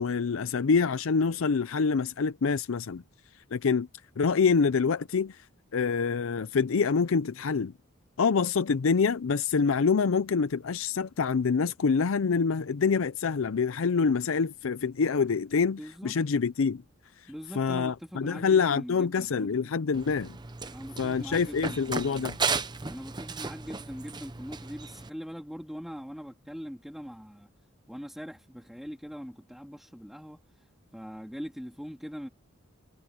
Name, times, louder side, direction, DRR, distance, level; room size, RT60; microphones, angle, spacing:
voice 1, 0.0-3.0 3.5-3.9 4.2-5.4 5.7-7.7 8.2-16.8 17.5-20.4 21.0-22.4, left 5 dB, 75° left, 0.5 m, -26 dB
voice 2, 15.8-16.1 17.3-19.7 20.7-22.3 22.9-27.5 27.9-32.3, equal, ahead, 2.6 m, -42 dB
Run, 19.9-25.1, right 4 dB, 20° right, 0.7 m, -35 dB
head